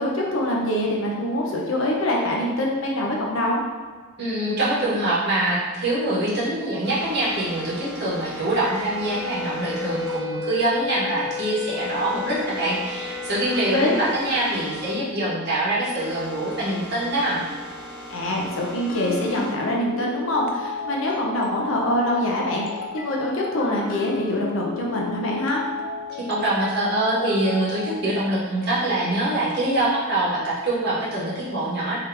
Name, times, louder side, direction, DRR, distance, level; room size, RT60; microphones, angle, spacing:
voice 1, 0.0-3.6 13.7-14.0 18.1-25.6, left 1 dB, 75° left, -2 dB, 0.7 m, -24 dB
voice 2, 4.2-17.4 26.3-32.0, right 1 dB, 50° right, -7 dB, 1.3 m, -24 dB
sound 1, 6.8-15.0 15.3-19.6 20.0-21.8, equal, 15° left, 1.4 m, -40 dB
Wind instrument woodwind instrument, 8.5-14.3, left 4 dB, 80° right, 1.1 m, -33 dB
sound 2, 18.9-28.3, left 5 dB, 45° left, 0.3 m, -33 dB
3.6 x 2.9 x 3.4 m, 1.4 s
head